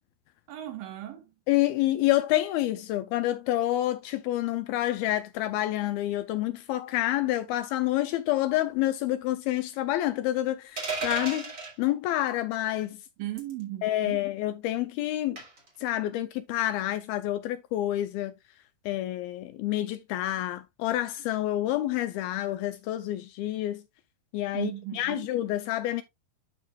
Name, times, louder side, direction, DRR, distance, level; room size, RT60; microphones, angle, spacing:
voice 1, 0.5-1.3 13.2-14.2 24.5-25.3, right 14 dB, 70° right, 2.4 m, -37 dB
voice 2, 1.5-11.5 11.8-13.0 13.8-15.4 15.8-18.3 18.9-23.8 24.3-26.0, left 14 dB, 80° left, 2.3 m, -28 dB
sound 1, 10.8-11.7 13.4-13.6 15.4-15.7, right 4 dB, 25° right, 2.5 m, -33 dB
11.5 x 4.9 x 2.4 m
omnidirectional pair, 4.8 m